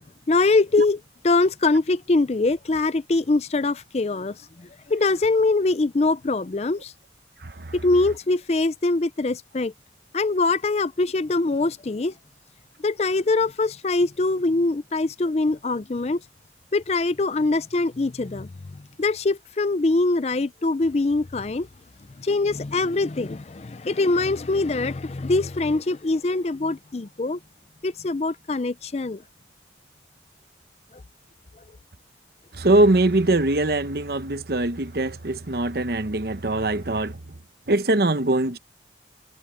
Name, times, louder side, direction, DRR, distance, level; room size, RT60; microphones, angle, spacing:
voice 1, 0.3-1.0 1.2-6.9 7.7-9.7 10.1-12.1 12.8-16.2 16.7-21.7 22.2-27.4 27.8-29.2, left 3 dB, 35° left, 0.5 m, -23 dB
voice 2, 7.4-7.7 32.5-37.2 37.7-38.6, right 2 dB, 55° right, 1.0 m, -22 dB
head